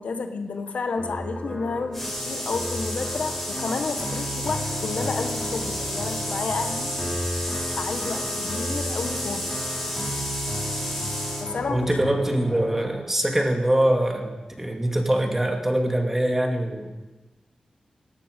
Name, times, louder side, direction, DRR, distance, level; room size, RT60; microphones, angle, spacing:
voice 1, 0.0-6.9 7.7-9.6 11.4-11.9, left 4 dB, 80° left, 7 dB, 1.4 m, -31 dB
sound 1, 1.0-13.0, equal, 25° left, 4.4 m, -33 dB
sound 2, 1.9-11.5, left 1 dB, 5° left, 5.8 m, -32 dB
voice 2, 11.7-17.0, right 1 dB, 15° right, 3 dB, 2.5 m, -23 dB
18.0 x 15.0 x 5.3 m, 1.1 s
wide cardioid pair, 85°, 2 cm